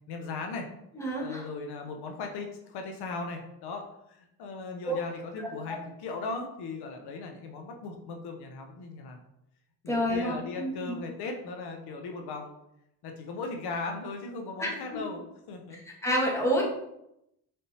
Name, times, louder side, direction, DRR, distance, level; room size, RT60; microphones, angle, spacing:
voice 1, 0.1-0.7 1.2-9.2 9.8-12.5 13.0-15.8, left 3 dB, 85° left, 3 dB, 0.7 m, -38 dB
voice 2, 0.9-1.4 4.8-5.0 5.4-5.8 9.9-10.7 14.6-15.0 16.0-16.6, equal, 5° left, -3 dB, 1.3 m, -29 dB
4.1 x 3.5 x 2.8 m, 0.81 s
cardioid pair, 90°, 38 cm